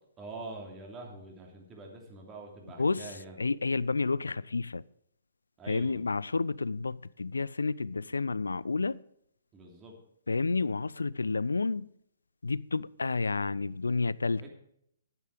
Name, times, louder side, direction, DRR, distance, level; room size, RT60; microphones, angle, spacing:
voice 1, 0.2-3.4 5.6-6.0 9.5-10.0 14.4-14.5, right 3 dB, 20° right, 2.9 m, -45 dB
voice 2, 2.8-3.1 3.4-4.8 5.7-9.0 10.3-11.9 12.4-14.5, left 3 dB, 80° left, 0.4 m, -30 dB
10.5 x 9.0 x 5.0 m
figure-of-eight pair, 125°, 0 cm